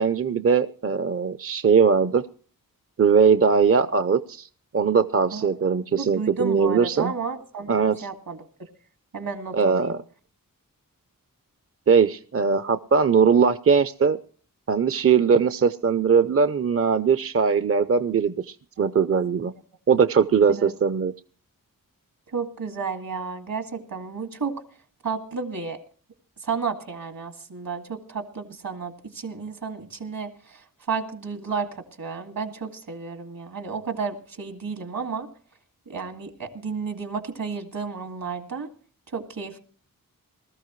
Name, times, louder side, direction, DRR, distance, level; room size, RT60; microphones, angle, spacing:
voice 1, 0.0-2.2 3.0-4.5 4.7-7.1 7.7-8.1 9.5-10.0 11.9-14.2 14.7-19.5 19.9-21.1, right 6 dB, 40° right, 12 dB, 0.5 m, -20 dB
voice 2, 5.9-8.4 9.1-9.9 20.5-20.7 22.3-24.5 25.0-25.8 26.4-35.3 35.9-38.7 39.1-39.6, right 5 dB, 75° right, 5 dB, 2.2 m, -32 dB
20.0 x 13.5 x 3.1 m, 0.42 s
wide cardioid pair, 85°, 34 cm